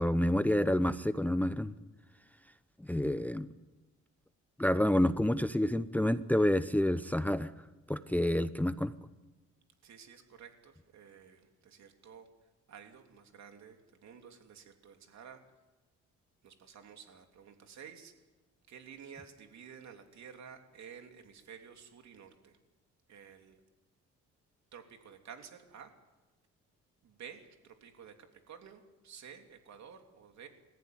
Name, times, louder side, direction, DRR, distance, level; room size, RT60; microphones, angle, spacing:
voice 1, 0.0-1.7 2.8-3.5 4.6-7.5 7.9-8.9, left 1 dB, 5° left, 13 dB, 0.7 m, -28 dB
voice 2, 9.8-12.3 12.7-15.4 16.4-18.1 18.7-22.6 23.1-23.6 24.7-25.9 27.0-30.5, right 7 dB, 65° right, 5 dB, 3.3 m, -52 dB
30.0 x 14.5 x 9.7 m, 1.1 s
cardioid pair, 90°, 30 cm